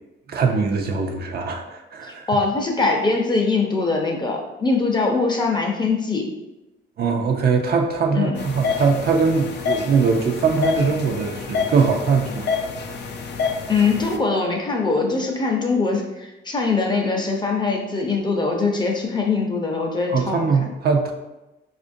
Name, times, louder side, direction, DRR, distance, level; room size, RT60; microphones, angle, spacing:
voice 1, 0.3-2.3 7.0-12.5 20.1-21.1, right 5 dB, 55° right, 3 dB, 0.5 m, -21 dB
voice 2, 2.0-6.3 8.1-8.4 13.7-20.5, left 4 dB, 20° left, 1 dB, 0.7 m, -22 dB
sound 1, 8.4-14.2, left 5 dB, 60° left, 0.5 m, -28 dB
4.2 x 2.5 x 2.6 m, 1.0 s
cardioid pair, 90°, 20 cm